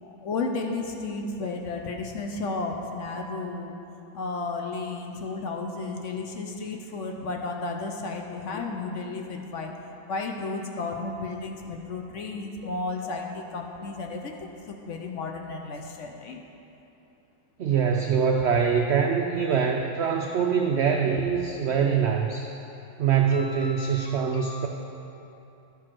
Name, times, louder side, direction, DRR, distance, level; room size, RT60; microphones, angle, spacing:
voice 1, 0.0-3.7 4.1-9.7 10.1-16.4 23.3-24.7, left 3 dB, 60° left, 2 dB, 0.9 m, -33 dB
voice 2, 17.6-22.5 23.0-24.7, right 6 dB, 80° right, 3 dB, 0.5 m, -24 dB
11.5 x 4.7 x 5.9 m, 2.9 s
omnidirectional pair, 1.7 m